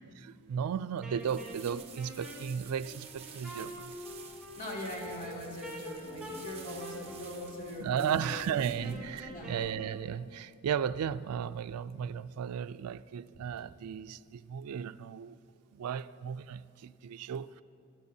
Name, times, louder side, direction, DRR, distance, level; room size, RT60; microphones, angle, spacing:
voice 1, 0.2-3.8 7.8-15.4 15.7-17.6, right 8 dB, 80° right, 0.3 m, -35 dB
Wind instrument woodwind instrument, 1.0-10.0, right 1 dB, 5° right, 2.9 m, -46 dB
sound 1, 1.2-9.7, right 6 dB, 25° right, 1.0 m, -52 dB
voice 2, 4.6-9.0 9.3-9.5, left 1 dB, 35° left, 2.3 m, -41 dB
20.0 x 13.5 x 2.7 m
head